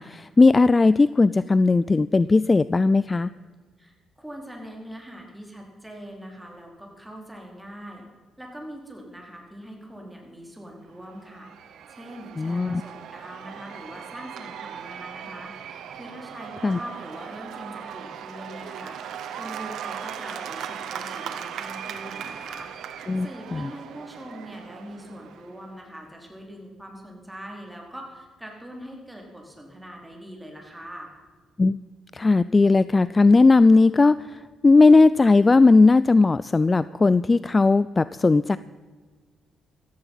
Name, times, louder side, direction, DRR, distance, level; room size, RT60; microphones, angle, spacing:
voice 1, 0.0-3.3 12.4-12.8 16.6-16.8 23.1-23.6 31.6-31.8 32.1-38.6, left 3 dB, 25° left, 17 dB, 0.3 m, -18 dB
voice 2, 3.8-8.0 8.4-11.5 11.9-22.7 23.2-31.1, equal, 5° right, 0 dB, 4.3 m, -42 dB
Cheering / Applause / Crowd, 11.0-25.7, right 8 dB, 75° right, 1.3 m, -38 dB
15.0 x 15.0 x 5.6 m, 1.4 s
cardioid pair, 90°, 0 cm